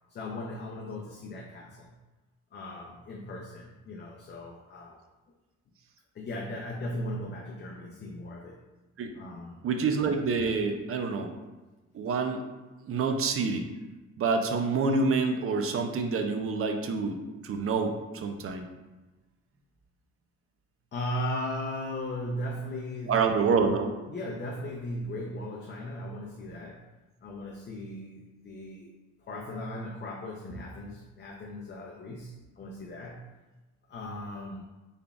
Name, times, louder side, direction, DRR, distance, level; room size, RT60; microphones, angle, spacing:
voice 1, 0.1-1.9 2.5-5.0 6.1-8.6 9.1-9.6 20.9-23.5 24.1-26.8 27.2-28.9 29.2-33.3 33.9-34.6, left 1 dB, 35° left, -2 dB, 0.5 m, -37 dB
voice 2, 9.6-11.3 11.9-12.4 12.9-13.7 14.2-18.7 23.1-23.9, right 4 dB, 50° right, 5 dB, 0.5 m, -27 dB
3.8 x 3.5 x 2.3 m, 1.1 s
cardioid pair, 90°, 30 cm